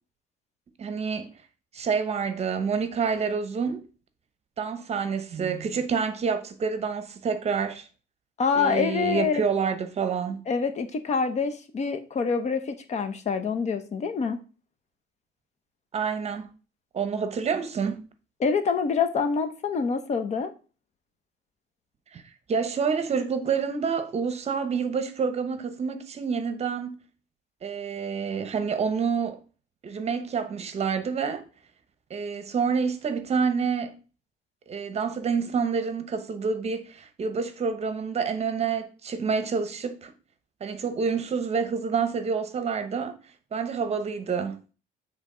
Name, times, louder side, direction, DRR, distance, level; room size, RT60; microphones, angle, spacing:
voice 1, 0.8-1.3 1.7-3.8 4.6-7.9 8.5-10.4 15.9-16.5 16.9-18.0 22.1-22.2 22.5-27.0 27.6-29.4 29.8-31.4 32.1-33.9 34.7-40.1 40.6-43.2 43.5-44.6, right 6 dB, 40° right, 0.9 m, -28 dB
voice 2, 8.4-9.4 10.5-14.4 18.4-20.5, left 5 dB, 40° left, 0.8 m, -26 dB
7.4 x 3.5 x 3.8 m
cardioid pair, 110°, 17 cm